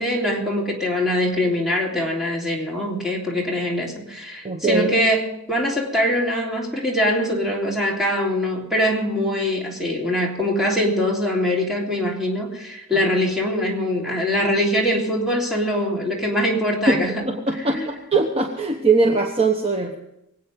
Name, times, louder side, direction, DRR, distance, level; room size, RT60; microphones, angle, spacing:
voice 1, 0.0-17.2 17.5-17.9, equal, ahead, -3 dB, 3.2 m, -23 dB
voice 2, 4.4-4.9 16.9-20.0, right 3 dB, 25° right, 3 dB, 1.0 m, -21 dB
23.5 x 8.5 x 5.2 m, 0.87 s
head